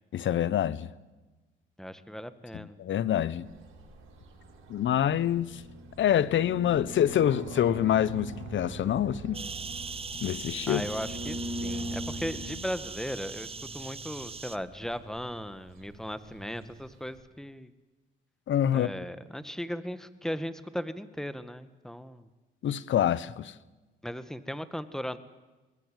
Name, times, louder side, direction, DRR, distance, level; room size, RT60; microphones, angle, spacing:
voice 1, 0.1-0.9 2.5-3.5 4.7-5.6 6.0-9.4 10.2-10.8 18.5-18.9 22.6-23.5, left 10 dB, 65° left, 1.2 m, -26 dB
voice 2, 1.8-2.8 10.7-17.7 18.7-22.3 24.0-25.2, equal, ahead, 1.8 m, -37 dB
sound 1, 3.4-17.2, right 1 dB, 75° right, 7.6 m, -42 dB
sound 2, 9.3-14.6, right 4 dB, 30° right, 1.2 m, -40 dB
25.5 x 20.5 x 9.3 m
cardioid pair, 75°, 21 cm